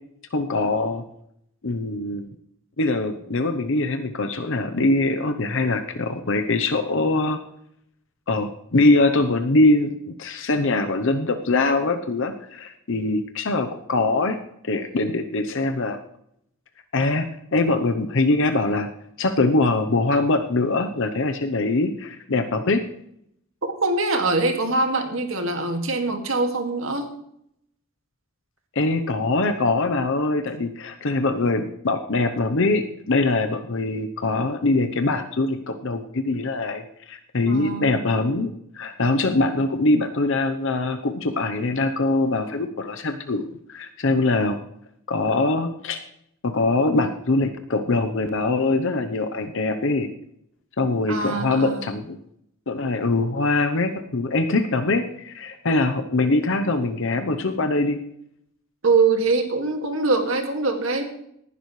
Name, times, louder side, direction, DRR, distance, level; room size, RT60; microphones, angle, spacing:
voice 1, 0.3-1.0 1.6-2.2 2.8-7.4 8.3-14.4 14.6-16.0 16.9-17.3 17.5-18.9 19.2-22.8 28.7-44.6 45.1-46.0 46.4-50.1 50.8-52.2 52.7-58.0, left 2 dB, 65° left, 7 dB, 0.8 m, -23 dB
voice 2, 23.8-27.1 37.5-37.9 51.1-51.9 58.8-61.1, right 3 dB, 75° right, 4 dB, 2.2 m, -23 dB
19.0 x 11.0 x 3.2 m, 0.74 s
head